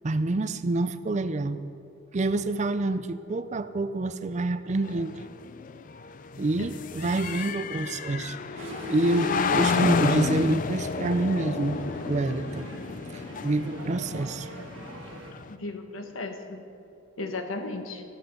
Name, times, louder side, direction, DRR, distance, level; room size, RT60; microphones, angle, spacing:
voice 1, 0.0-1.6 2.1-5.2 6.4-11.8 12.1-12.7 13.1-14.5 14.8-14.9, right 2 dB, 35° right, 12 dB, 0.5 m, -27 dB
sound 1, 4.8-15.5, left 4 dB, 40° left, 0.4 m, -31 dB
sound 2, 8.6-15.3, equal, 65° right, 1.8 m, -39 dB
voice 2, 15.5-16.6 17.2-18.0, left 2 dB, 75° left, 5 dB, 1.4 m, -35 dB
14.5 x 12.5 x 5.4 m, 2.8 s
head